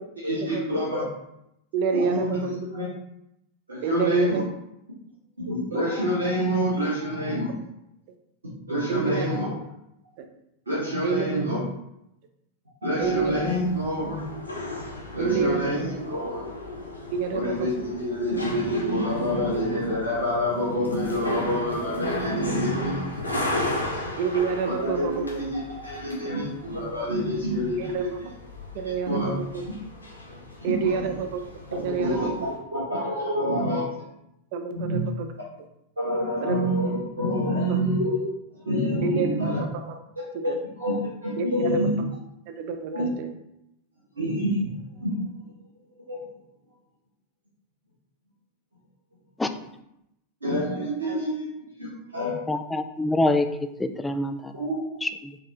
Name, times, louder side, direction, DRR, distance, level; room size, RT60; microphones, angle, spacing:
voice 1, 0.2-1.0 1.9-2.9 3.7-4.4 5.4-7.5 8.7-9.5 10.7-11.6 12.8-14.2 15.1-16.4 17.3-23.0 23.3-23.4 24.6-28.1 29.1-29.3 30.6-31.1 32.0-32.3 32.7-33.9 34.7-35.0 36.0-38.3 38.6-39.6 40.8-42.0 42.9-43.1 44.2-44.7 45.0-45.2 46.1-46.2 50.4-51.5 51.8-51.9 52.1-52.4 54.5-54.8, equal, 75° right, -9 dB, 1.3 m, -27 dB
voice 2, 1.7-2.5 3.8-4.5 8.9-9.3 10.2-10.3 11.0-11.4 13.0-13.4 15.2-15.7 17.1-17.7 24.2-25.2 27.8-28.0 28.7-29.6 30.6-31.4 31.7-32.3 34.5-35.3 36.4-36.6 37.7-37.8 39.0-40.0 40.3-40.6 41.4-42.1 42.5-43.3, right 6 dB, 45° right, 6 dB, 0.5 m, -28 dB
sound 1, 13.0-32.6, left 1 dB, 80° left, 0.8 m, -36 dB
voice 3, 52.5-54.7 55.0-55.4, left 2 dB, 10° left, 8 dB, 0.3 m, -26 dB
3.8 x 3.5 x 2.8 m, 0.83 s
figure-of-eight pair, 90°, 0 cm